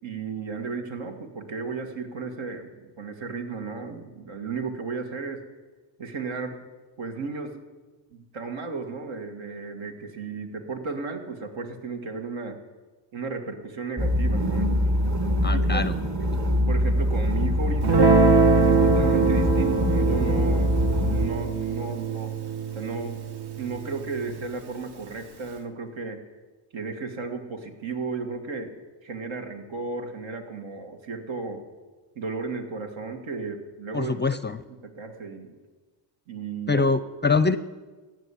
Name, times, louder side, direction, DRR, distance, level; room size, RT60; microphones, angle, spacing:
voice 1, 0.0-5.4 6.0-6.6 7.0-7.6 8.1-12.6 13.1-14.9 15.5-15.8 16.7-18.1 18.5-20.8 21.0-22.3 22.7-23.2 23.6-26.2 26.7-28.7 29.0-31.6 32.2-34.2 34.8-35.5 36.3-36.8, right 4 dB, 70° right, 5 dB, 2.0 m, -34 dB
sound 1, 14.0-21.3, left 1 dB, 35° right, 2.0 m, -24 dB
voice 2, 15.4-16.0 16.3-16.4 33.9-34.6 36.7-37.6, left 4 dB, 25° left, 14 dB, 0.5 m, -24 dB
Guitar, 17.8-24.4, right 4 dB, 55° right, 1.4 m, -23 dB
15.5 x 6.5 x 9.8 m, 1.3 s
cardioid pair, 90°, 48 cm